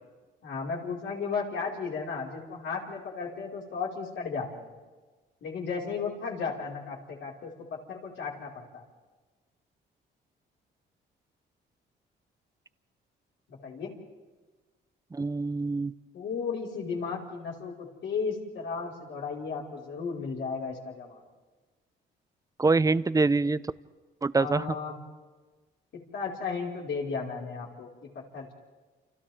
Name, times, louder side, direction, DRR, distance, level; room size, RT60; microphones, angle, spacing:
voice 1, 0.4-4.7 5.4-7.5 7.9-8.8 13.5-13.9 16.1-21.2 24.3-25.0 26.1-27.9 28.3-28.5, left 5 dB, 70° left, -4 dB, 5.4 m, -34 dB
voice 2, 15.1-15.9 22.6-23.6 24.2-24.7, right 3 dB, 15° right, 16 dB, 0.6 m, -25 dB
29.5 x 28.0 x 3.7 m, 1.3 s
cardioid pair, 90°, 20 cm